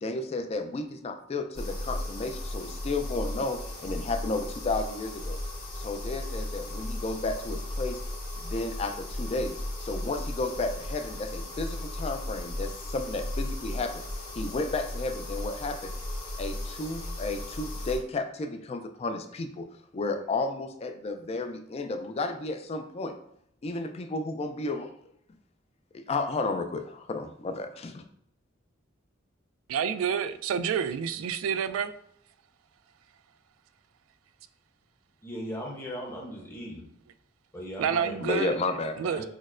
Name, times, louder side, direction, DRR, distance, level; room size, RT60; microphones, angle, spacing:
voice 1, 0.0-5.4 5.8-8.0 8.4-14.0 14.3-15.9 16.4-19.7 19.9-23.2 23.6-24.9 25.9-28.0 38.2-39.0, left 3 dB, 30° left, 0.3 m, -32 dB
sound 1, 1.5-18.0, left 1 dB, 50° left, 1.2 m, -36 dB
voice 2, 29.7-31.9 37.8-38.6 39.0-39.2, right 7 dB, 90° right, 0.3 m, -28 dB
voice 3, 35.2-36.8 37.5-38.1 39.0-39.3, equal, 10° left, 0.8 m, -38 dB
6.1 x 2.0 x 2.4 m
head